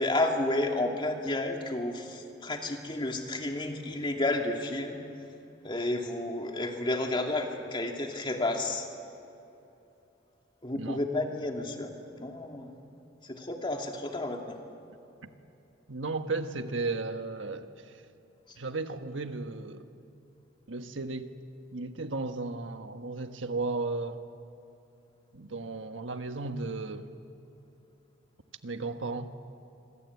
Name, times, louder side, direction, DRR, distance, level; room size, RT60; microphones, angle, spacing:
voice 1, 0.0-5.0 5.6-8.9 10.6-12.7 13.2-14.6, left 2 dB, 25° left, 2 dB, 2.4 m, -31 dB
voice 2, 15.9-17.7 18.6-19.9 20.7-21.3 21.7-24.2 25.3-27.1 28.6-29.3, right 3 dB, 75° right, 7 dB, 1.4 m, -34 dB
26.0 x 23.5 x 8.5 m, 2.9 s
head